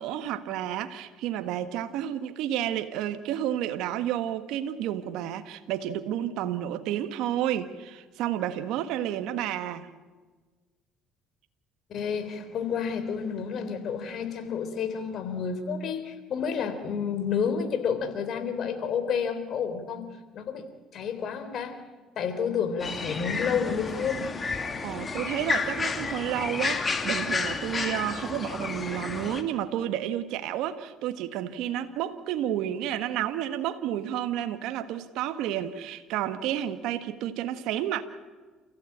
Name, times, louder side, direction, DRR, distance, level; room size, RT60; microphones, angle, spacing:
voice 1, 0.0-9.9 24.8-38.0, right 11 dB, 75° right, 9 dB, 1.5 m, -31 dB
voice 2, 11.9-20.0 20.3-20.7 20.9-21.8 22.2-24.3, left 6 dB, 55° left, 9 dB, 3.7 m, -30 dB
sound 1, 22.8-29.4, left 4 dB, 30° left, 2.5 m, -31 dB
29.0 x 15.5 x 8.7 m, 1.3 s
supercardioid pair, 90°, 0 cm